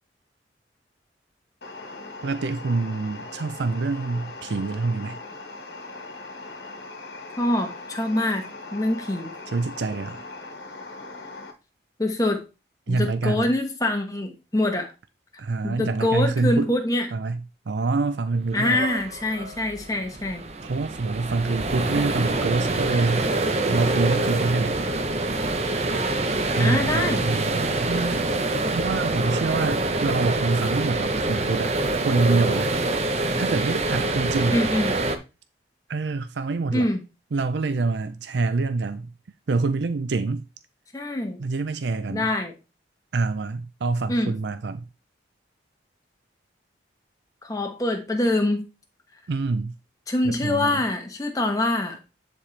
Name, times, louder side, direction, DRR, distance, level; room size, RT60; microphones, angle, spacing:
sound 1, 1.6-11.5, left 3 dB, 65° left, 1.3 m, -40 dB
voice 1, 2.2-5.2 9.5-10.2 12.9-13.5 15.4-16.7 17.1-17.4 17.7-18.8 20.6-23.3 23.7-24.8 26.5-28.2 28.7-31.7 32.0-32.7 33.4-34.6 35.9-36.9 37.3-39.1 39.5-40.4 41.4-42.3 43.1-44.9 49.3-49.7 50.2-50.8, right 3 dB, 75° right, 0.5 m, -26 dB
voice 2, 7.4-9.3 12.0-12.4 12.9-14.9 15.6-17.1 18.5-20.4 26.6-27.3 34.5-34.9 36.7-37.0 40.9-41.4 42.1-42.6 44.1-44.3 47.4-48.7 50.1-52.0, left 1 dB, 20° left, 1.1 m, -25 dB
sound 2, 18.5-35.2, right 2 dB, 35° right, 0.7 m, -26 dB
9.9 x 4.2 x 3.2 m
head